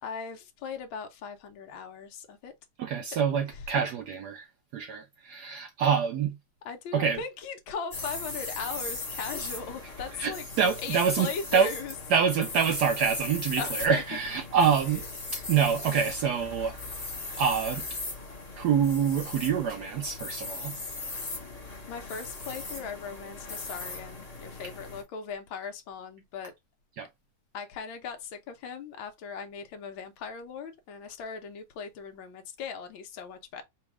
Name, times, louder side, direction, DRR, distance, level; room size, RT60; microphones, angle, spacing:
voice 1, 0.0-2.5 3.5-3.6 6.6-10.5 10.8-11.9 13.6-14.0 21.9-26.5 27.5-33.6, left 5 dB, 70° left, 1.6 m, -38 dB
voice 2, 2.8-6.4 6.9-7.2 10.2-11.7 12.1-15.0 15.3-16.8 17.4-17.8 18.6-20.7 27.0-27.1, right 7 dB, 80° right, 0.9 m, -26 dB
sound 1, 7.9-25.0, left 3 dB, 25° left, 0.9 m, -38 dB
4.2 x 2.3 x 4.7 m
omnidirectional pair, 2.3 m